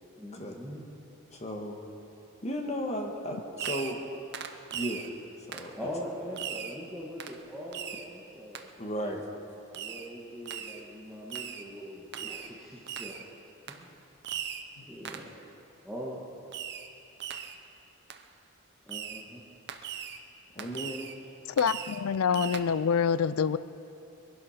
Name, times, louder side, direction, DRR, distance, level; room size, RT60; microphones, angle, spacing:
voice 1, 0.2-0.8 5.8-8.7 9.7-13.3 13.7-14.0 14.9-15.4 15.8-16.2 18.9-19.4, equal, ahead, -7 dB, 1.7 m, -42 dB
voice 2, 1.3-1.8 2.4-4.0 4.7-5.0 5.5-5.9 8.8-9.2 20.5-21.1, equal, 30° left, 2 dB, 1.6 m, -35 dB
Fireworks, 3.6-4.1 4.3-5.1 5.5-5.7 6.4-6.8 7.2-7.4 7.7-8.1 8.5-8.7 9.7-10.1 10.5-10.8 11.3-11.7 12.1-12.5 12.9-13.2 13.7-13.8 14.2-14.7 15.0-15.3 16.5-16.9 17.2-17.6 18.1-18.2 18.9-19.3 19.7-20.2 20.6-21.2 21.6-22.0 22.3-22.6, right 8 dB, 50° right, 0.7 m, -39 dB
voice 3, 21.6-23.6, left 6 dB, 90° left, 15 dB, 0.5 m, -26 dB
21.5 x 11.5 x 5.8 m, 2.8 s
head